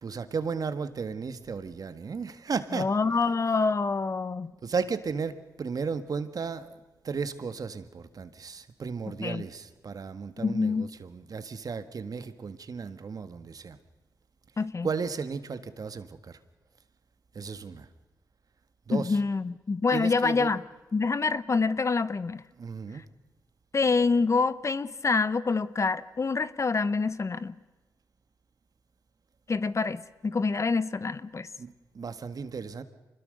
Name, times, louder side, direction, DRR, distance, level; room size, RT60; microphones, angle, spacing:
voice 1, 0.0-3.3 4.6-13.8 14.5-16.4 17.3-17.9 18.9-19.2 19.9-20.6 22.6-23.0 31.6-32.8, right 5 dB, 60° right, 11 dB, 1.7 m, -35 dB
voice 2, 2.8-4.5 9.2-9.4 10.4-10.9 14.6-14.9 18.9-20.6 20.9-22.4 23.7-27.5 29.5-31.5, left 4 dB, 45° left, 16 dB, 0.9 m, -26 dB
25.5 x 21.0 x 6.6 m, 1.2 s
cardioid pair, 55°, 7 cm